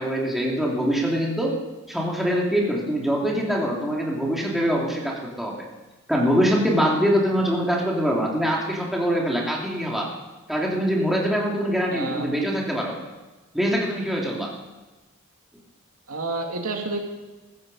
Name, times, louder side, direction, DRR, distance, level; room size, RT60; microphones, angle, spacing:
voice 1, 0.0-1.5 1.9-5.6 6.1-10.1 10.5-13.0 13.5-14.5, equal, ahead, -3 dB, 2.8 m, -23 dB
voice 2, 11.9-12.3 16.1-17.0, right 3 dB, 85° right, 2 dB, 2.4 m, -29 dB
15.5 x 13.5 x 5.5 m, 1.2 s
head